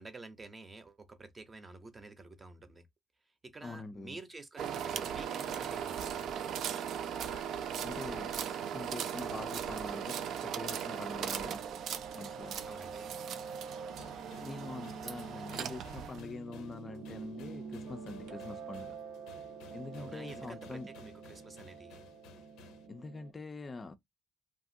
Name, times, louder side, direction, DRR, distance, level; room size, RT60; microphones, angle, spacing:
voice 1, 0.0-2.9 3.4-6.3 12.7-13.1 20.0-22.0, right 3 dB, 25° right, 0.7 m, -50 dB
voice 2, 3.6-4.2 7.8-8.4 8.7-10.2 10.4-11.6 12.2-12.6 14.4-19.0 19.7-20.9 22.9-24.0, left 3 dB, 30° left, 0.4 m, -44 dB
sound 1, 4.6-16.2, right 8 dB, 65° right, 0.3 m, -38 dB
Piano, 8.9-23.3, right 5 dB, 85° right, 0.7 m, -48 dB
sound 2, 13.9-22.9, left 5 dB, 90° left, 0.6 m, -56 dB
2.8 x 2.4 x 2.5 m
cardioid pair, 100°, 0 cm